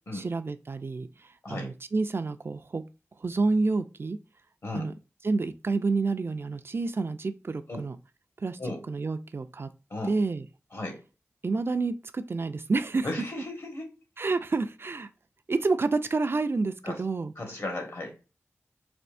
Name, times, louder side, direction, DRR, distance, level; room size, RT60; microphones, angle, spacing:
voice 1, 0.1-2.8 3.2-4.2 4.7-4.9 5.2-8.0 8.4-8.6 8.9-9.7 10.1-10.5 11.4-13.1 14.2-15.1 15.5-17.3, right 3 dB, 50° right, 0.4 m, -29 dB
voice 2, 13.0-13.9 14.2-14.3 16.8-17.0 17.3-18.2, left 2 dB, 60° left, 1.6 m, -35 dB
4.3 x 2.7 x 2.5 m
wide cardioid pair, 80°, 5 cm